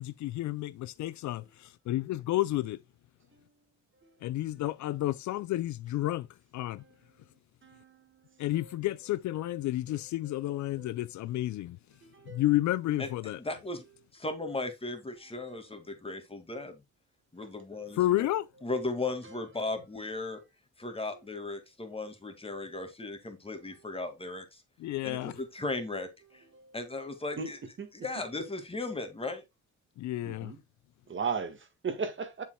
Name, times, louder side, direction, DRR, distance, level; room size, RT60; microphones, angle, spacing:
voice 1, 0.0-2.8 4.2-6.3 6.5-6.7 8.4-11.8 12.3-13.4 18.0-18.5 24.8-25.3 30.0-30.5, left 15 dB, 70° left, 0.5 m, -31 dB
voice 2, 7.6-8.1 8.5-8.7 9.4-9.5 10.2-10.4 10.8-10.9 12.0-12.4 19.2-19.4 25.2-25.4 26.5-26.8 27.4-27.5 27.8-27.9 30.2-30.6 31.1-32.4, right 5 dB, 40° right, 1.7 m, -37 dB
voice 3, 13.4-13.8 14.1-16.8 17.3-18.3 18.6-20.4 20.8-24.6 25.0-26.4 26.7-27.6 28.0-29.4, left 2 dB, 20° left, 2.1 m, -36 dB
7.2 x 7.2 x 2.3 m
cardioid pair, 90°, 30 cm